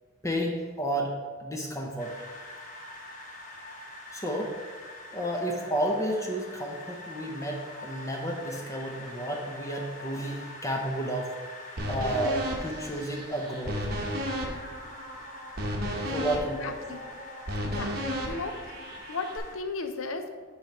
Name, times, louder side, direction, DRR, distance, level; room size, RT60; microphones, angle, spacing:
voice 1, 0.2-2.1 4.1-4.5 5.1-11.3 11.9-13.8 16.1-16.9, right 1 dB, 15° left, 0 dB, 0.7 m, -31 dB
sound 1, 2.0-19.5, left 2 dB, 35° left, 1.0 m, -45 dB
sound 2, 11.8-19.4, equal, 45° right, 1.0 m, -34 dB
voice 2, 16.6-17.0 17.6-17.9 18.3-18.5 19.1-20.3, left 4 dB, 75° left, 7 dB, 0.6 m, -35 dB
7.7 x 3.3 x 5.8 m, 1.5 s
head